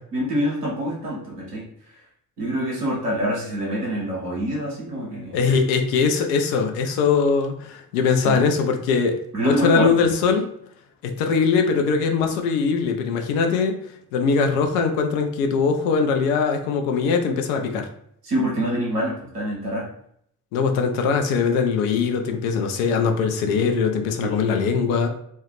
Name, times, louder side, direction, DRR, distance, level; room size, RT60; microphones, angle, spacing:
voice 1, 0.1-1.9 2.4-5.5 8.2-8.4 9.3-10.1 18.2-19.9 24.2-24.4, equal, 90° right, -4 dB, 0.7 m, -26 dB
voice 2, 5.3-9.2 9.4-10.5 11.0-13.8 14.1-17.9 20.5-25.1, left 5 dB, 65° left, 5 dB, 0.5 m, -21 dB
2.2 x 2.1 x 3.3 m, 0.69 s
figure-of-eight pair, 40°, 46 cm